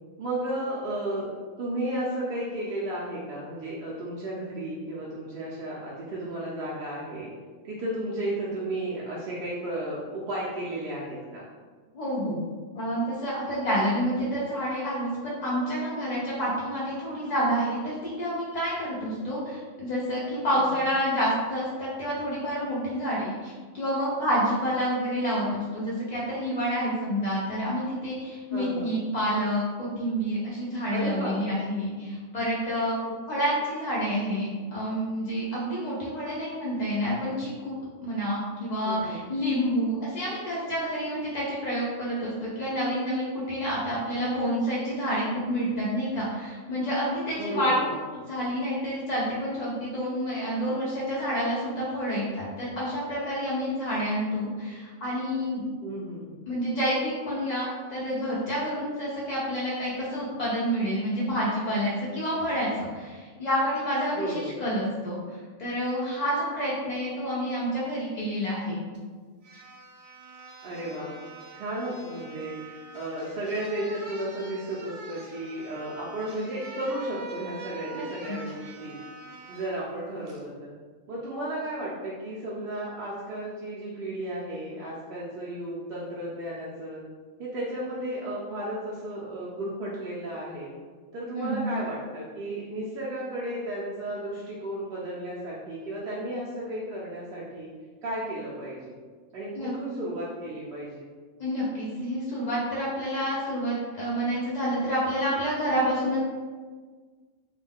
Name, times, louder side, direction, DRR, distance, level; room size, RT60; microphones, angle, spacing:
voice 1, 0.2-1.3 1.6-7.3 7.6-11.4 20.5-20.6 28.5-29.0 30.9-31.4 38.8-39.2 47.4-47.9 55.8-56.3 64.1-64.6 70.6-71.2 71.5-79.0 79.5-80.7 81.1-87.0 87.4-90.7 91.1-97.7 98.0-99.0 99.3-101.1, right 1 dB, 60° right, -7 dB, 0.6 m, -33 dB
voice 2, 11.9-12.4 12.7-33.0 33.3-48.0 48.3-55.7 56.5-65.2 65.6-68.8 77.9-78.4 91.3-91.8 99.5-99.7 101.4-106.2, equal, 65° left, -7 dB, 0.4 m, -28 dB
sound 1, 68.9-69.0 69.4-79.8 80.3-80.4, right 3 dB, 85° right, 1.0 m, -45 dB
2.4 x 2.2 x 3.3 m, 1.5 s
omnidirectional pair, 1.3 m